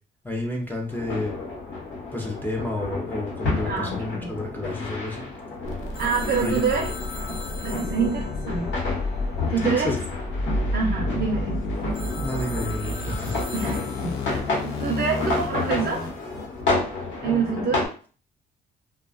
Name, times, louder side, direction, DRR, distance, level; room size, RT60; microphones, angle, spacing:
voice 1, 0.2-1.4 2.1-5.3 6.4-6.6 9.6-10.0 12.2-13.4 17.3-17.4, left 1 dB, 10° left, -1 dB, 0.6 m, -30 dB
sound 1, 0.9-17.9, left 3 dB, 70° left, 1.0 m, -31 dB
voice 2, 3.7-4.3 6.0-6.9 7.3-7.4 7.6-8.7 9.5-9.9 10.7-11.6 13.5-16.1 17.2-17.8, right 5 dB, 55° right, 1 dB, 0.6 m, -26 dB
sound 2, 5.6-16.5, left 1 dB, 85° left, 0.5 m, -31 dB
Telephone, 5.9-9.6 11.9-14.5, left 4 dB, 45° left, 0.8 m, -41 dB
2.3 x 2.2 x 2.3 m, 0.39 s
cardioid pair, 90°, 20 cm